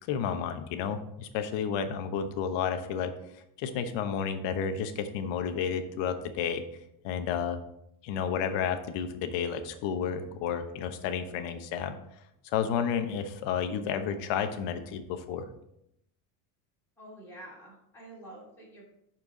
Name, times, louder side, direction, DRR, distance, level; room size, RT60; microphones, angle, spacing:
voice 1, 0.0-3.1 3.6-6.6 7.0-7.6 8.0-12.0 12.4-15.5, left 7 dB, 60° left, 8 dB, 1.1 m, -31 dB
voice 2, 17.0-18.8, right 1 dB, 5° left, -7 dB, 2.7 m, -48 dB
11.0 x 4.6 x 3.9 m, 0.79 s
cardioid pair, 135°, 49 cm